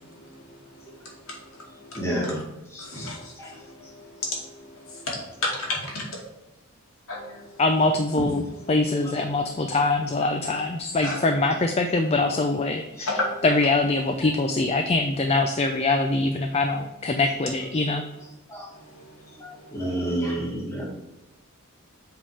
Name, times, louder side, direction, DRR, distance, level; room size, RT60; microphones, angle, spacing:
voice 1, 0.3-0.9 1.3-1.4 1.8-2.0 2.8-5.2 5.4-6.0 7.1-7.4 10.5-10.6 11.0-11.2 13.1-13.4 19.0-19.1 19.9-20.3, left 2 dB, 70° left, -3 dB, 2.4 m, -33 dB
voice 2, 1.9-2.4 2.7-3.1 3.4-3.5 9.0-9.1 13.0-13.1 18.5-18.7 19.4-20.8, right 1 dB, 10° left, -4 dB, 1.8 m, -30 dB
voice 3, 7.6-18.0, left 2 dB, 30° left, 5 dB, 0.4 m, -23 dB
7.6 x 3.7 x 4.8 m, 0.99 s
head